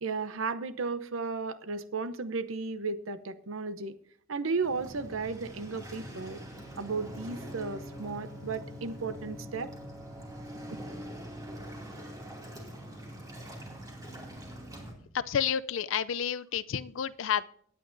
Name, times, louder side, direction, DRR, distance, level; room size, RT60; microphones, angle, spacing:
voice 1, 0.0-3.9 4.3-6.4 6.8-9.7, right 4 dB, 80° right, 13 dB, 0.7 m, -34 dB
Waves surf, 4.6-14.9, right 1 dB, 20° right, 2.4 m, -44 dB
Bowed string instrument, 6.5-11.3, left 1 dB, 10° left, 2.3 m, -50 dB
voice 2, 15.1-17.5, left 8 dB, 70° left, 15 dB, 0.5 m, -30 dB
18.0 x 9.3 x 2.6 m, 0.63 s
head